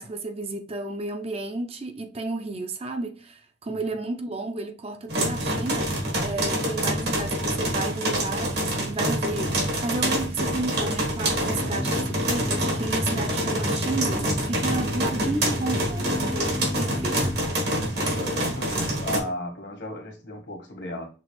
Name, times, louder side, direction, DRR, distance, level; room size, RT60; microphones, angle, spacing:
voice 1, 0.0-17.4, right 3 dB, 35° right, 0.5 m, -32 dB
sound 1, 5.1-19.2, right 1 dB, 65° right, 1.4 m, -26 dB
sound 2, 11.2-17.5, left 1 dB, 15° left, 0.6 m, -33 dB
voice 2, 17.7-21.1, left 1 dB, 70° left, 1.5 m, -35 dB
6.0 x 2.5 x 3.0 m
head